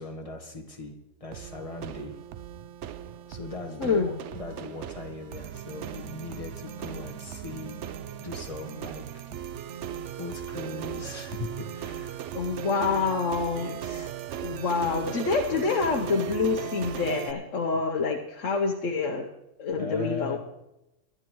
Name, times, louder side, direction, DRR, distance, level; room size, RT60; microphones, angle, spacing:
voice 1, 0.0-2.2 3.3-7.8 8.2-9.4 10.2-12.2 13.6-14.1 19.8-20.4, left 2 dB, 25° left, 2 dB, 1.4 m, -39 dB
sound 1, 1.3-17.3, right 9 dB, 70° right, 0.9 m, -37 dB
voice 2, 3.8-4.2 12.3-14.1 14.4-19.3 19.6-20.4, left 4 dB, 75° left, 1 dB, 1.3 m, -27 dB
22.0 x 11.0 x 3.1 m, 0.92 s
omnidirectional pair, 1.3 m